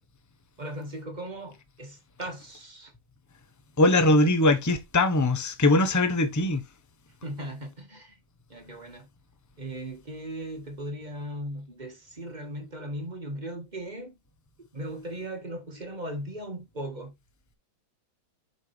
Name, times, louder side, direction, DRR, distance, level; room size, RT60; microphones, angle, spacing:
voice 1, 0.6-2.9 7.2-8.2 8.5-9.1 9.6-14.2 14.7-17.1, right 1 dB, 25° right, 1.7 m, -38 dB
voice 2, 3.8-6.6, left 2 dB, 15° left, 0.7 m, -21 dB
7.4 x 5.6 x 3.4 m
omnidirectional pair, 2.0 m